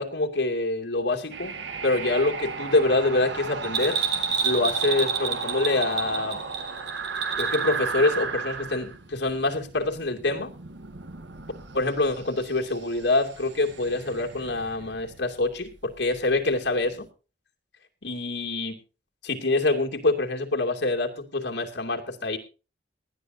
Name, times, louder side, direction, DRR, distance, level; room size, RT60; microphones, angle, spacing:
voice 1, 0.0-4.0 4.4-6.4 7.4-10.5 11.7-17.1 18.0-18.8 19.2-22.4, left 2 dB, 80° left, 2 dB, 2.7 m, -26 dB
sound 1, 1.3-17.1, right 4 dB, 85° right, 1.4 m, -36 dB
Bell, 3.6-7.8 8.0-8.1, right 6 dB, 65° right, 3.4 m, -28 dB
19.5 x 12.0 x 2.8 m, 0.33 s
head